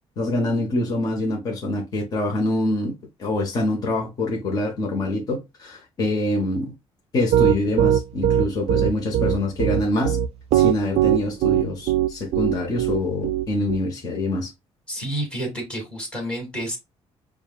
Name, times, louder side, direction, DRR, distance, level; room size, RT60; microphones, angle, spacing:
voice 1, 0.2-2.9 3.2-6.7 7.1-10.2 10.5-14.5, left 2 dB, 35° left, 1.0 m, -25 dB
Piano, 7.3-13.8, right 11 dB, 70° right, 0.4 m, -19 dB
voice 2, 14.9-16.8, right 1 dB, 10° left, 1.9 m, -29 dB
6.9 x 2.3 x 2.3 m
cardioid pair, 175°, 11 cm